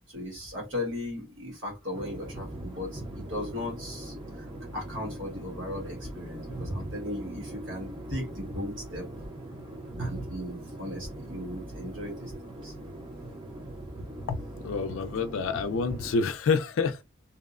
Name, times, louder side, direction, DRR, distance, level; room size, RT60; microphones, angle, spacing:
voice 1, 0.1-4.5 4.7-9.1 10.0-12.7, left 1 dB, 70° right, 1.4 m, -37 dB
sound 1, 1.9-16.1, right 1 dB, 25° right, 0.5 m, -40 dB
voice 2, 14.6-17.0, left 4 dB, 75° left, 0.3 m, -28 dB
2.6 x 2.0 x 2.4 m
head